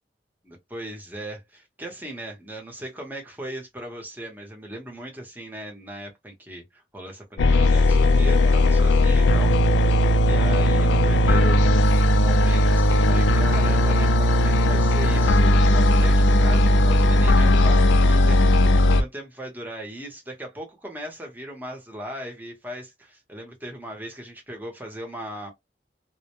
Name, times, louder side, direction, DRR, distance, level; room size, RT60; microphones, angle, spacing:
voice 1, 0.4-10.0 10.2-11.6 12.2-25.5, right 1 dB, 10° right, 0.7 m, -38 dB
sound 1, 7.4-19.0, left 1 dB, 90° left, 0.4 m, -17 dB
2.1 x 2.0 x 2.9 m
head